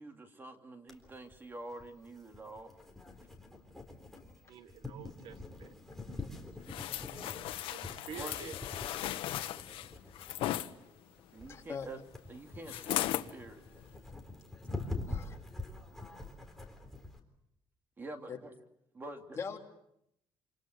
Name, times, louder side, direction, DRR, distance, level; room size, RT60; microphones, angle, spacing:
voice 1, 0.0-2.7 8.1-8.5 11.3-12.0 12.3-13.6 18.0-18.5 18.9-19.4, right 2 dB, 25° right, 5 dB, 2.7 m, -47 dB
sound 1, 0.9-17.2, left 2 dB, 5° left, 3.9 m, -45 dB
voice 2, 4.5-5.7 6.8-6.9 7.7-8.5 9.1-9.2 9.6-9.9, right 8 dB, 60° right, 11 dB, 1.5 m, -49 dB
sound 2, 6.7-10.7 12.7-13.3 13.8-14.0, left 13 dB, 85° left, 1.2 m, -36 dB
voice 3, 11.5-11.9 15.1-15.4 18.3-18.4 19.4-19.6, left 6 dB, 30° left, 1 dB, 3.5 m, -40 dB
27.5 x 27.0 x 7.8 m, 0.78 s
cardioid pair, 155°, 9 cm